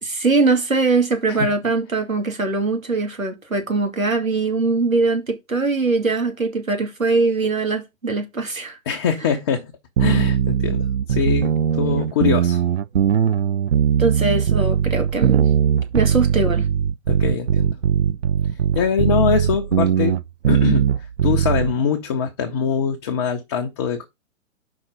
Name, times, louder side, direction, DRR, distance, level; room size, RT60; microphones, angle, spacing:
voice 1, 0.0-8.8 14.0-15.5 15.9-16.7, right 3 dB, 80° right, 2.2 m, -21 dB
voice 2, 8.9-9.7 10.0-12.6 15.6-15.8 17.1-17.8 18.5-20.2 20.5-20.9 21.2-24.1, left 7 dB, 20° left, 0.6 m, -23 dB
sound 1, 10.0-21.8, right 8 dB, 55° right, 0.5 m, -19 dB
5.6 x 4.3 x 6.3 m
figure-of-eight pair, 120°, 40 cm